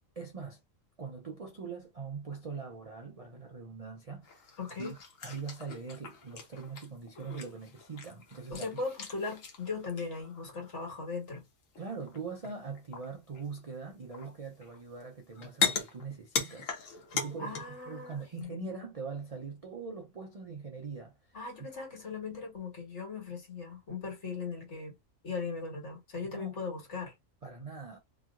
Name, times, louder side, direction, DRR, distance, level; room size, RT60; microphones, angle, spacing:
voice 1, 0.2-0.6 1.0-8.7 11.8-21.7 26.3-26.5 27.4-28.0, right 5 dB, 50° right, 0.4 m, -42 dB
sound 1, 4.2-10.8 11.7-12.2 12.4-13.6 14.1-15.0 15.3-17.8 18.1-18.4, left 5 dB, 80° left, 1.2 m, -38 dB
voice 2, 4.6-4.9 8.5-11.4 17.4-18.8 21.3-25.0 25.2-27.1, left 4 dB, 60° left, 1.8 m, -38 dB
3.0 x 2.7 x 2.4 m
omnidirectional pair, 1.3 m